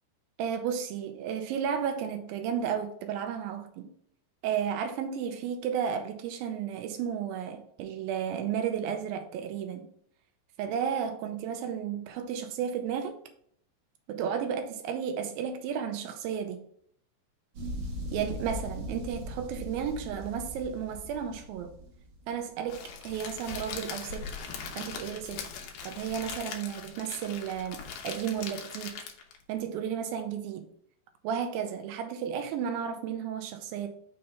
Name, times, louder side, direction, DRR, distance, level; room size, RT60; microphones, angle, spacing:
voice 1, 0.4-3.9 4.4-9.9 10.6-13.2 14.1-16.6 18.1-21.7 22.3-24.3 24.8-25.4 25.8-29.0 29.5-30.6 31.2-33.9, right 8 dB, 85° right, 2.2 m, -33 dB
sound 1, 17.5-22.4, equal, 65° right, 1.8 m, -39 dB
Crackle, 22.7-29.4, left 6 dB, 85° left, 1.7 m, -40 dB
6.5 x 2.8 x 5.5 m
omnidirectional pair, 4.7 m